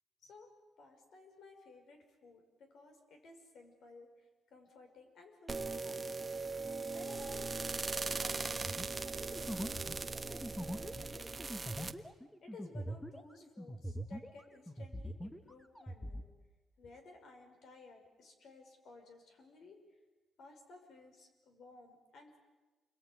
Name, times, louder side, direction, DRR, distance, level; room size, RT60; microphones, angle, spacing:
voice 1, 0.8-4.1 4.5-6.3 6.9-8.7 9.1-11.6 12.0-12.1 12.4-16.3 16.8-19.8 20.4-22.4, left 3 dB, 65° left, 4 dB, 5.8 m, -57 dB
sound 1, 5.5-11.9, right 3 dB, 20° right, 1.3 m, -39 dB
sound 2, 8.7-14.4 14.7-16.3, equal, 5° left, 1.5 m, -43 dB
28.5 x 22.0 x 9.6 m, 1.2 s
cardioid pair, 125°, 0 cm